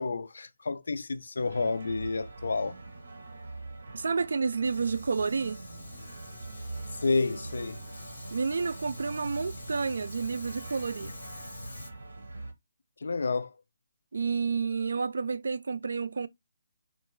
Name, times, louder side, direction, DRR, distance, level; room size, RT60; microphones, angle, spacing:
voice 1, 0.0-2.8 7.0-7.8 13.0-13.6, left 3 dB, 75° left, 0.3 m, -30 dB
sound 1, 1.4-12.5, right 2 dB, 90° right, 0.7 m, -43 dB
voice 2, 3.9-5.6 8.3-11.2 14.1-16.3, right 5 dB, 70° right, 0.3 m, -30 dB
Fire, 4.6-11.9, left 3 dB, 90° left, 0.8 m, -47 dB
sound 2, 5.7-11.2, left 4 dB, 15° left, 0.5 m, -59 dB
2.3 x 2.2 x 3.0 m
hypercardioid pair, 170°, 0 cm